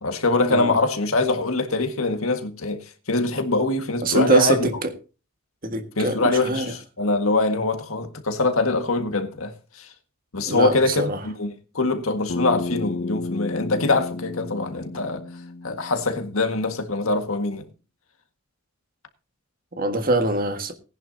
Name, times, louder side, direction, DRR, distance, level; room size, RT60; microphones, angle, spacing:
voice 1, 0.0-2.8 3.1-4.7 6.0-9.9 10.3-15.2 15.6-17.6, left 3 dB, 85° left, 1.8 m, -23 dB
voice 2, 4.0-4.9 5.6-6.7 10.5-11.2 19.8-20.7, right 2 dB, 45° right, 1.7 m, -23 dB
Bass guitar, 12.3-16.6, left 3 dB, 55° left, 0.7 m, -32 dB
18.5 x 10.5 x 2.8 m
head